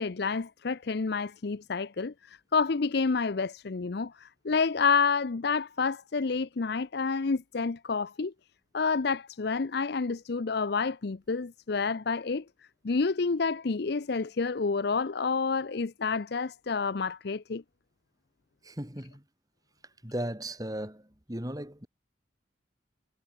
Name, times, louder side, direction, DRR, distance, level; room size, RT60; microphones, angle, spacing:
voice 1, 0.0-8.3 8.7-12.4 12.8-17.6, left 4 dB, 55° left, 0.6 m, -29 dB
voice 2, 18.6-19.2 20.0-21.0 21.3-21.9, right 1 dB, 20° right, 4.1 m, -36 dB
head